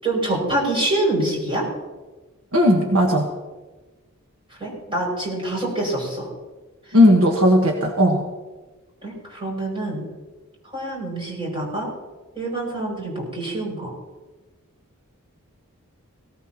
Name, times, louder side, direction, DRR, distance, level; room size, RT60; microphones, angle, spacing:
voice 1, 0.0-1.6 4.6-6.3 9.0-10.0 10.7-11.9 12.3-13.9, right 1 dB, 25° right, -3 dB, 6.5 m, -25 dB
voice 2, 2.5-3.3 6.9-8.2, left 1 dB, 70° right, 1 dB, 1.5 m, -16 dB
18.5 x 18.0 x 3.0 m, 1.2 s
head